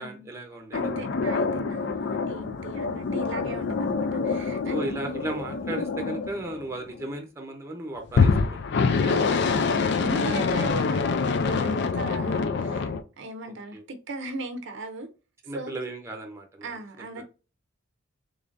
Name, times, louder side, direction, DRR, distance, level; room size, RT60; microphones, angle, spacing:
voice 1, 0.0-0.8 4.7-8.6 9.0-9.3 13.7-13.8 15.5-16.7 17.1-17.2, right 1 dB, 15° right, 0.7 m, -35 dB
sound 1, 0.7-7.1 8.1-13.0, left 4 dB, 55° left, 0.4 m, -26 dB
voice 2, 0.7-4.8 9.9-15.1 15.5-15.8 16.6-17.2, right 2 dB, 60° right, 0.6 m, -37 dB
3.6 x 3.3 x 2.5 m
head